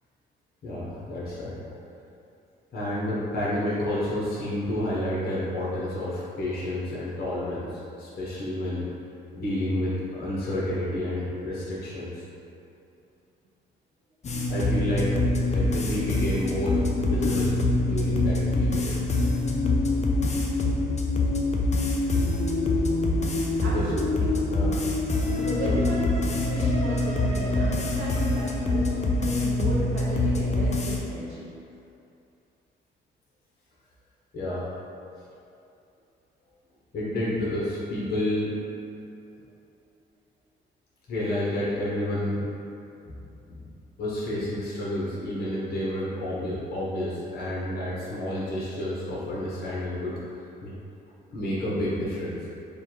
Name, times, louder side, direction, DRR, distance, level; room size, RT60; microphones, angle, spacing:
voice 1, 0.6-1.8 2.7-8.9 9.3-12.2 14.5-15.1 15.5-19.2 23.6-23.9 24.5-24.8 25.6-25.8 34.3-34.7 36.9-38.5 41.1-42.4 43.0-43.2 43.5-43.6 44.0-50.4 50.6-50.7 51.3-52.4, left 1 dB, 50° left, -7 dB, 0.9 m, -30 dB
sound 1, 14.2-31.0, left 2 dB, 35° left, 0.5 m, -25 dB
voice 2, 23.6-24.4 25.3-31.5, right 2 dB, 90° right, -7 dB, 0.6 m, -35 dB
3.4 x 2.3 x 4.4 m, 2.7 s
cardioid pair, 90°, 20 cm